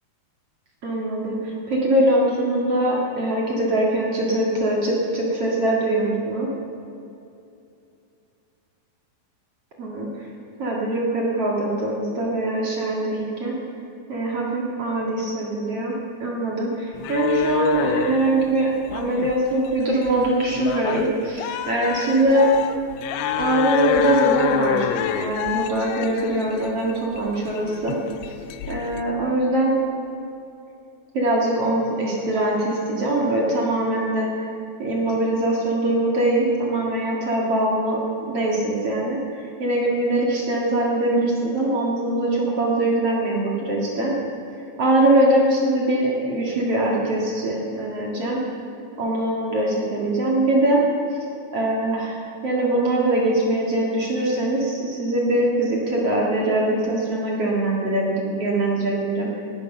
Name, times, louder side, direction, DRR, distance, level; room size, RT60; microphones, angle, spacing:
voice 1, 0.8-6.5 9.8-10.3 10.6-13.6 14.1-15.9 16.2-22.5 23.4-28.0 28.7-29.7 31.1-34.5 34.8-38.0 38.3-44.2 44.8-48.4 49.0-50.8 51.5-59.3, right 1 dB, 45° right, -3 dB, 2.3 m, -22 dB
sound 1, 16.9-29.0, left 9 dB, 80° left, 2.3 m, -28 dB
18.5 x 12.0 x 5.6 m, 2.7 s
omnidirectional pair, 4.9 m